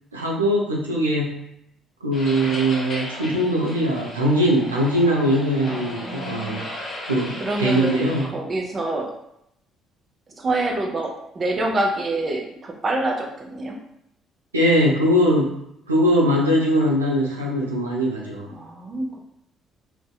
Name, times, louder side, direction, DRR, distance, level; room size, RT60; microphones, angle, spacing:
voice 1, 0.1-1.4 2.0-6.6 7.1-8.3 14.5-15.6 15.9-18.5, equal, 85° right, -2 dB, 0.4 m, -21 dB
sound 1, 2.1-8.3, left 1 dB, 45° left, 0.7 m, -35 dB
voice 2, 5.7-6.6 7.4-9.1 10.4-13.8 18.5-19.2, right 2 dB, 35° right, 1 dB, 0.5 m, -27 dB
2.6 x 2.1 x 2.2 m, 0.77 s
figure-of-eight pair, 45°, 0 cm